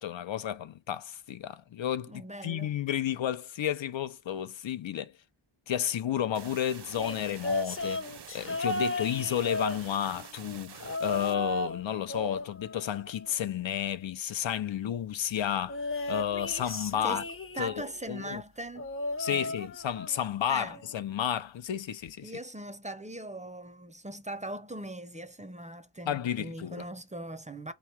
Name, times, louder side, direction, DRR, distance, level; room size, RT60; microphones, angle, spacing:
voice 1, 0.0-5.1 5.7-8.1 8.3-15.8 16.1-17.2 17.6-18.4 19.2-22.3 26.1-26.9, left 10 dB, 80° left, 0.6 m, -32 dB
voice 2, 2.1-2.8 17.0-17.3 17.5-18.9 19.2-19.5 20.5-20.8 22.2-27.7, right 1 dB, 15° right, 0.5 m, -40 dB
sound 1, 6.3-11.3, right 7 dB, 60° right, 0.6 m, -48 dB
sound 2, 7.0-10.3 10.8-11.8 12.1-13.6 15.7-17.9 18.8-20.2 20.6-20.9 22.1-22.2, left 2 dB, 30° left, 0.6 m, -35 dB
3.6 x 3.0 x 4.5 m
wide cardioid pair, 70°, 45 cm